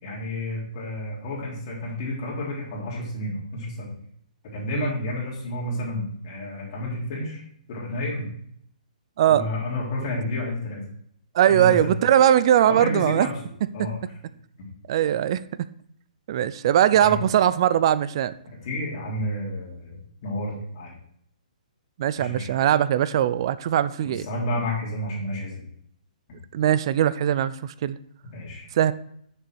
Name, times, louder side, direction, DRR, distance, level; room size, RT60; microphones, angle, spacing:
voice 1, 0.0-3.9 4.4-7.4 7.7-8.3 9.3-10.8 11.5-12.0 12.7-13.3 13.7-14.0 17.0-17.3 18.6-20.9 22.2-22.5 24.0-25.7 28.3-28.7, left 1 dB, 35° left, 3.5 m, -30 dB
voice 2, 9.2-9.5 11.3-13.3 14.9-15.7 16.3-18.3 22.0-24.3 26.5-28.0 28.7-28.9, right 11 dB, 35° right, 0.4 m, -20 dB
6.8 x 6.7 x 6.3 m
hypercardioid pair, 165°, 4 cm